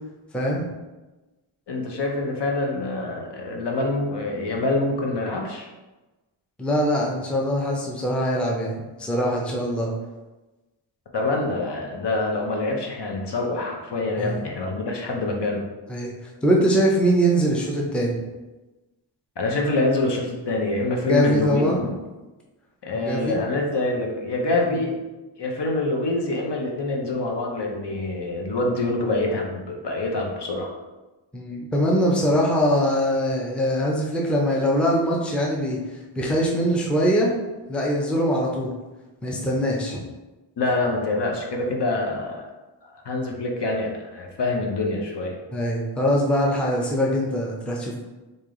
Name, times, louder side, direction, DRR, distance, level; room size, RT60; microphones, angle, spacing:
voice 1, 0.3-0.7 6.6-9.9 14.2-14.5 15.9-16.1 16.4-18.2 21.1-21.9 23.1-23.4 24.7-24.8 31.3-35.8 36.2-37.3 37.7-38.7 39.2-40.0 45.5-48.0, equal, ahead, -2 dB, 0.5 m, -22 dB
voice 2, 1.7-5.7 11.1-15.7 19.4-21.8 22.8-24.9 25.4-30.7 40.6-42.5 42.8-45.4, left 2 dB, 60° left, 0 dB, 0.7 m, -26 dB
3.2 x 2.7 x 3.7 m, 1.1 s
wide cardioid pair, 95°, 48 cm